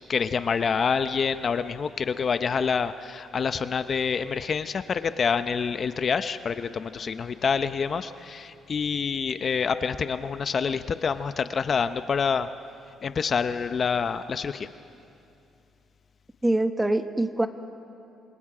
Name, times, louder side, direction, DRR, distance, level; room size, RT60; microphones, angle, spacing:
voice 1, 0.1-12.5 13.0-14.7, left 6 dB, 45° left, 11 dB, 0.7 m, -27 dB
voice 2, 16.4-17.5, right 1 dB, 10° right, 8 dB, 1.2 m, -24 dB
27.5 x 26.5 x 5.0 m, 2.8 s
cardioid pair, 90°, 0 cm